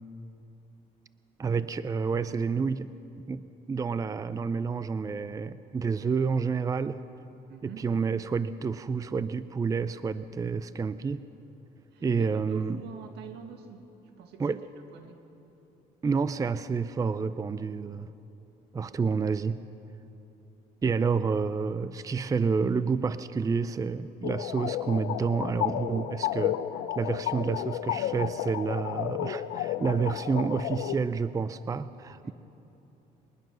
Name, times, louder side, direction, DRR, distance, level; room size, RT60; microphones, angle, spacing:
voice 1, 1.4-2.9 3.3-7.0 7.6-11.2 12.0-12.8 14.4-14.6 16.0-18.1 18.7-19.6 20.8-26.6 26.9-32.3, right 5 dB, 20° right, 14 dB, 0.5 m, -29 dB
voice 2, 7.5-7.9 11.9-13.9 14.2-14.6 14.9-15.2 32.2-32.3, right 7 dB, 80° right, 5 dB, 2.1 m, -45 dB
sound 1, 24.2-31.0, left 12 dB, 85° left, 0.7 m, -32 dB
22.5 x 20.5 x 6.3 m, 2.9 s
cardioid pair, 110°, 17 cm